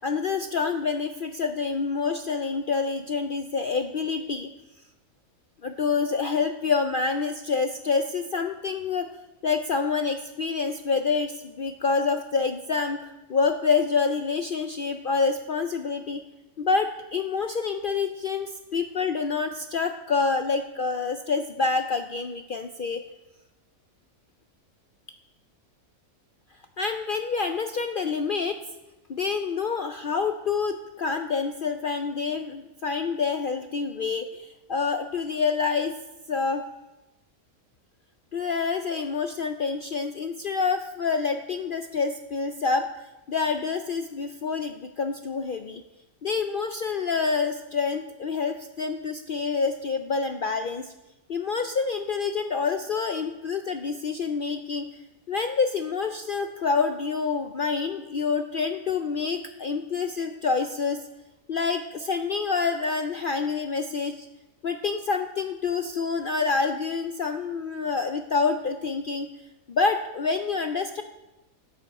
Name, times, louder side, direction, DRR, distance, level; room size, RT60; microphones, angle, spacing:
voice 1, 0.0-4.5 5.6-9.1 9.4-13.0 13.3-16.2 16.6-23.0 26.8-28.6 29.1-35.9 36.3-36.6 38.3-42.9 43.3-45.8 46.2-50.9 51.3-54.9 55.3-61.0 61.5-64.3 64.6-69.3 69.7-71.0, left 5 dB, 60° left, 7 dB, 0.5 m, -27 dB
13.0 x 9.5 x 4.2 m, 1.0 s
omnidirectional pair, 1.5 m